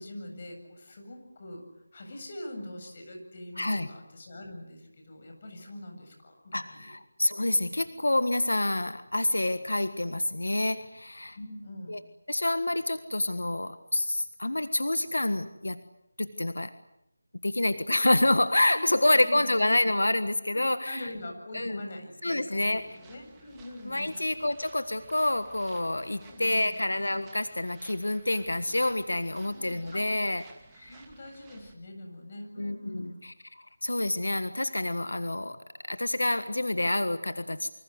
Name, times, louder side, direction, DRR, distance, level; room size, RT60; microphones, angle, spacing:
voice 1, 0.0-6.9 11.3-12.0 18.7-19.5 20.5-24.2 26.2-26.8 29.3-30.0 30.9-33.3, left 1 dB, 40° left, 4 dB, 7.8 m, -43 dB
voice 2, 3.6-3.9 6.5-11.4 11.9-12.0 12.3-15.8 16.2-16.7 17.4-21.1 21.5-21.8 22.2-23.0 23.9-30.4 30.8-31.0 32.6-35.6 35.9-37.7, left 1 dB, 90° left, 11 dB, 1.5 m, -28 dB
sound 1, 22.7-31.7, right 4 dB, 10° right, 2.4 m, -56 dB
27.0 x 25.5 x 8.0 m, 0.83 s
figure-of-eight pair, 170°, 0 cm